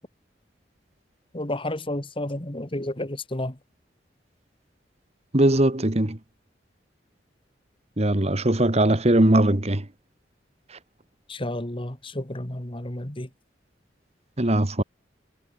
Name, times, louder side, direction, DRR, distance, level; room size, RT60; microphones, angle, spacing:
voice 1, 1.3-3.6 11.3-13.3, left 1 dB, 30° left, 2.1 m, -31 dB
voice 2, 5.3-6.2 8.0-9.9 14.4-14.8, right 1 dB, 35° right, 1.7 m, -20 dB
head